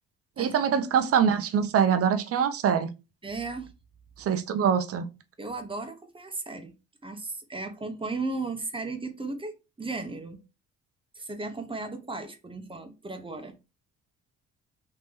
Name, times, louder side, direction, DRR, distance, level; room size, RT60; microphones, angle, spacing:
voice 1, 0.4-2.9 4.2-5.1, right 7 dB, 50° right, 0.6 m, -24 dB
voice 2, 3.2-3.7 5.4-6.7 7.0-9.5 9.8-10.4 11.1-13.5, right 3 dB, 15° right, 0.8 m, -35 dB
3.2 x 2.9 x 3.4 m
cardioid pair, 90°, 30 cm